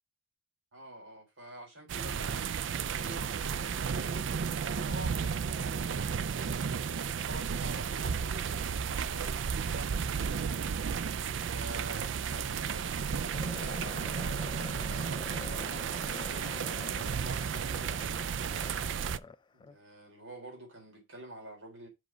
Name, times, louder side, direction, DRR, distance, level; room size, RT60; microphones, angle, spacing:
voice 1, 0.7-4.2 4.7-7.0 7.3-10.6 11.5-18.5 19.5-21.9, right 1 dB, 85° right, 3.6 m, -48 dB
sound 1, 1.9-19.2, right 6 dB, 65° right, 0.4 m, -33 dB
sound 2, 13.3-19.8, left 4 dB, 25° left, 0.4 m, -46 dB
6.2 x 5.2 x 4.9 m
head